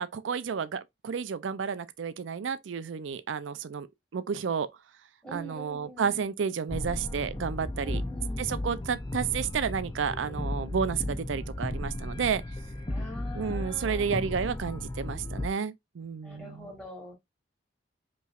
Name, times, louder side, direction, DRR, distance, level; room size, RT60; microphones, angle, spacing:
voice 1, 0.0-3.9 4.1-4.7 5.3-8.0 8.4-12.4 13.3-16.7, right 6 dB, 80° right, 0.4 m, -31 dB
voice 2, 5.2-6.2 7.8-8.4 12.9-14.1 16.2-17.1, equal, 5° left, 2.6 m, -44 dB
sound 1, 6.7-15.5, left 1 dB, 20° left, 0.5 m, -35 dB
5.3 x 3.1 x 2.4 m
head